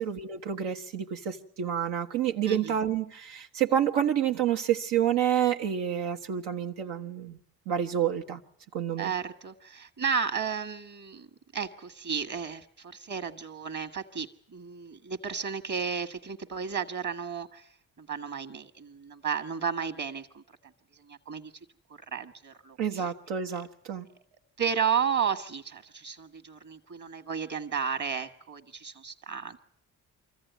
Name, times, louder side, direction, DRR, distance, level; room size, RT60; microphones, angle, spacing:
voice 1, 0.0-7.4 7.7-8.4 8.7-9.1 22.8-24.1, right 9 dB, 85° right, 4 dB, 1.3 m, -28 dB
voice 2, 9.0-11.3 11.5-17.7 18.0-20.4 21.1-21.5 22.1-23.0 24.6-29.6, right 6 dB, 45° right, 8 dB, 1.7 m, -33 dB
24.0 x 14.5 x 9.4 m, 0.72 s
supercardioid pair, 55°, 40 cm